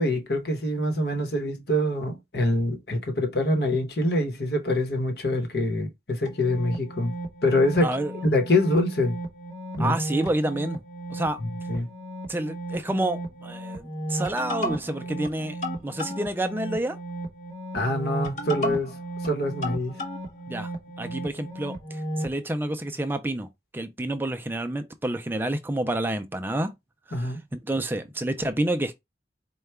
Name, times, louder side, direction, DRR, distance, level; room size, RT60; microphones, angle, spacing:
voice 1, 0.0-7.1 7.4-7.9 8.2-9.2 9.8-9.9 11.7-11.9 17.7-18.9 19.2-20.0 27.1-27.4, left 1 dB, 65° left, 1.0 m, -25 dB
sound 1, 6.3-22.4, right 1 dB, 40° left, 0.9 m, -34 dB
voice 2, 7.8-8.1 9.8-10.8 11.1-11.4 12.3-17.0 20.5-20.7 21.0-26.8 27.1-28.9, right 1 dB, 10° right, 0.4 m, -29 dB
4.5 x 2.3 x 3.2 m
head